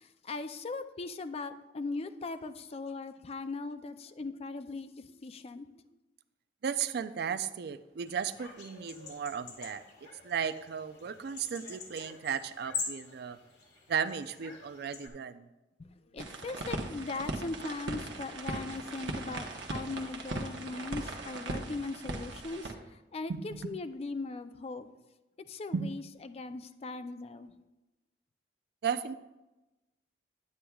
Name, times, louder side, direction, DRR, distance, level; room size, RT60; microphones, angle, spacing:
voice 1, 0.0-5.7 15.8-24.9 25.5-27.5, left 3 dB, 35° left, 11 dB, 0.4 m, -39 dB
voice 2, 6.6-9.8 10.2-13.4 13.9-15.5 23.3-23.7 25.7-25.9 28.8-29.1, right 7 dB, 60° right, 12 dB, 0.4 m, -35 dB
sound 1, 8.0-15.1, left 5 dB, 65° left, 1.7 m, -44 dB
sound 2, 16.2-22.7, right 2 dB, 75° right, 1.0 m, -39 dB
9.7 x 9.4 x 2.3 m, 1.0 s
head